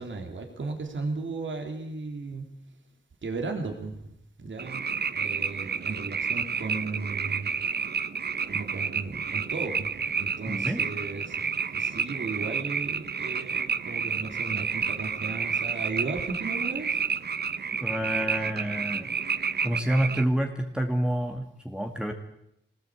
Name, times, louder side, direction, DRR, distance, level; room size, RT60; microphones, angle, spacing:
voice 1, 0.0-2.4 3.2-4.9 5.1-7.5 8.5-17.0, right 3 dB, 75° right, 3 dB, 3.4 m, -35 dB
sound 1, 4.6-20.2, right 6 dB, 55° right, 0.9 m, -30 dB
voice 2, 10.5-10.8 17.8-19.1 19.6-22.1, right 1 dB, 5° right, 2 dB, 2.4 m, -28 dB
23.5 x 19.0 x 8.5 m, 0.79 s
wide cardioid pair, 80°, 20 cm